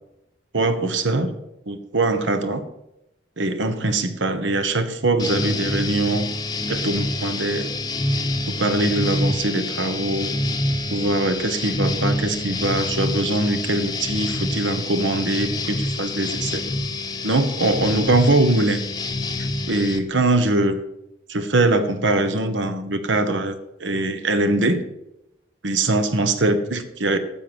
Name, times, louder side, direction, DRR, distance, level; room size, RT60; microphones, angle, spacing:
voice 1, 0.5-1.3 1.7-2.6 3.4-6.3 6.7-7.7 8.5-10.3 10.9-16.6 17.2-18.8 19.4-20.8 21.3-23.5 23.8-24.8 25.6-27.2, right 2 dB, 85° right, 9 dB, 1.3 m, -22 dB
sound 1, 5.2-20.0, left 2 dB, 20° left, 0.8 m, -27 dB
12.5 x 7.4 x 6.3 m, 0.86 s
head